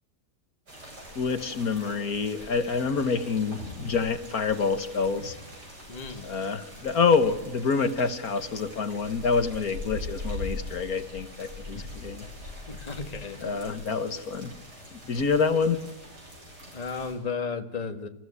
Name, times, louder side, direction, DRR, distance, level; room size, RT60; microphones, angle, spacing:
sound 1, 0.7-17.1, left 1 dB, 80° right, 8.4 m, -42 dB
voice 1, 1.2-5.4 6.2-12.3 13.4-14.5 15.1-15.9, left 5 dB, 65° left, 10 dB, 1.8 m, -27 dB
voice 2, 5.9-6.3 11.7-11.9 12.7-13.8 16.7-18.1, left 5 dB, 25° left, 7 dB, 1.6 m, -34 dB
28.0 x 15.0 x 9.8 m, 0.98 s
omnidirectional pair, 1.7 m